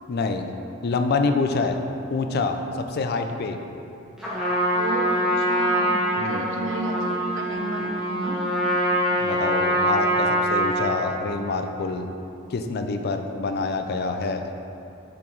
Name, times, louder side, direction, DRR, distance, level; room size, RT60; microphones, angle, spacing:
voice 1, 0.1-0.5 0.8-1.8 2.1-3.6 6.2-6.5 9.2-12.1 12.5-14.5, left 3 dB, 50° left, 6 dB, 0.4 m, -26 dB
Trumpet, 4.2-11.0, equal, 5° right, 1.3 m, -24 dB
voice 2, 4.7-8.4 9.1-9.3, right 2 dB, 65° right, 2 dB, 0.7 m, -32 dB
7.1 x 4.8 x 3.8 m, 2.7 s
head